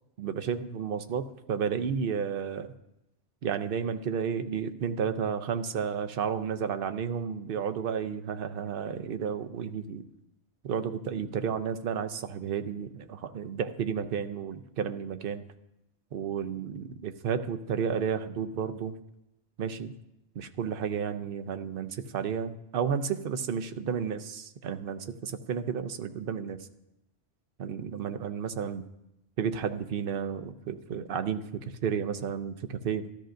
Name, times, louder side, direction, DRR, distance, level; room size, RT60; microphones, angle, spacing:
voice 1, 0.2-2.7 3.4-10.0 10.6-15.4 16.1-19.0 19.6-19.9 20.4-26.6 27.6-28.8 29.4-33.0, right 7 dB, 60° right, 9 dB, 0.8 m, -32 dB
13.5 x 13.0 x 2.6 m, 0.89 s
omnidirectional pair, 1.1 m